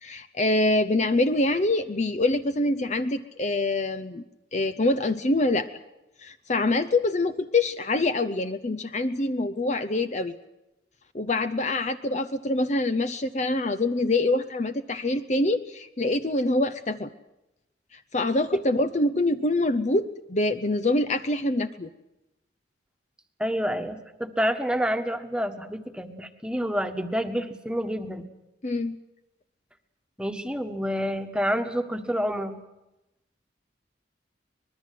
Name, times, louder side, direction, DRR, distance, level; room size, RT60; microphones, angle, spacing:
voice 1, 0.0-4.2 4.5-5.7 6.2-10.3 11.1-17.1 17.9-21.9 28.6-29.0, left 2 dB, 35° left, 10 dB, 0.8 m, -25 dB
voice 2, 23.4-28.3 30.2-32.6, equal, 5° right, 6 dB, 1.6 m, -28 dB
24.5 x 21.0 x 7.7 m, 0.93 s
head